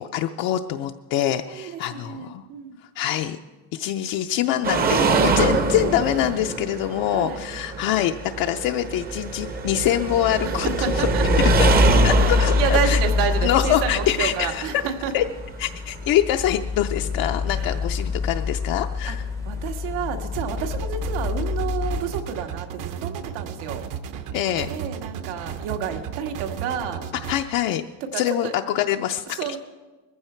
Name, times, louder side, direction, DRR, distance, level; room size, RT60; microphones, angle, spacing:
voice 1, 0.0-2.4 3.0-3.4 3.7-11.1 11.4-11.7 12.0-13.0 13.4-14.6 15.1-15.2 15.6-19.2 24.3-24.7 27.3-27.8 28.1-29.4, left 12 dB, 55° left, 5 dB, 0.6 m, -24 dB
voice 2, 1.5-2.8 7.0-7.4 10.4-11.3 12.1-15.1 17.5-17.8 19.1-19.2 19.5-23.8 24.7-27.0 28.1-28.6 29.4-29.6, right 8 dB, 80° right, 3 dB, 2.0 m, -30 dB
sound 1, 4.6-16.3 18.0-18.1 19.1-19.2, right 4 dB, 25° right, 0.7 m, -24 dB
sound 2, 9.1-22.0, left 5 dB, 10° left, 0.6 m, -26 dB
sound 3, 20.3-27.4, right 8 dB, 50° right, 1.0 m, -34 dB
20.5 x 15.0 x 4.5 m, 1.2 s
cardioid pair, 170°, 40 cm